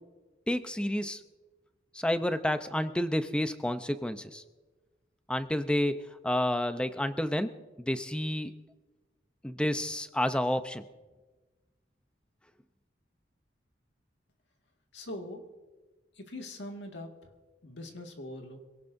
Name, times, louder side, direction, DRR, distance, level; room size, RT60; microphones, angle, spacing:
voice 1, 0.5-1.2 1.9-4.4 5.3-6.0 6.2-7.5 7.8-8.5 9.4-10.8, left 1 dB, 5° left, 9 dB, 0.6 m, -30 dB
voice 2, 14.9-15.4 16.2-17.1 17.6-18.6, left 1 dB, 85° left, 3 dB, 1.9 m, -42 dB
25.5 x 17.5 x 2.7 m, 1.2 s
head